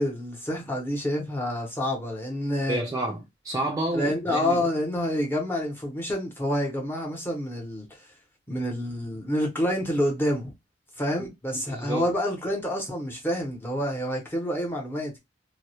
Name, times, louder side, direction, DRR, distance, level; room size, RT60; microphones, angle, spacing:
voice 1, 0.0-2.8 3.9-7.9 8.5-10.5 11.0-15.2, left 1 dB, 10° left, 0.7 m, -28 dB
voice 2, 2.7-4.6 11.2-12.1, right 2 dB, 15° right, 0.3 m, -30 dB
2.2 x 2.0 x 2.7 m
head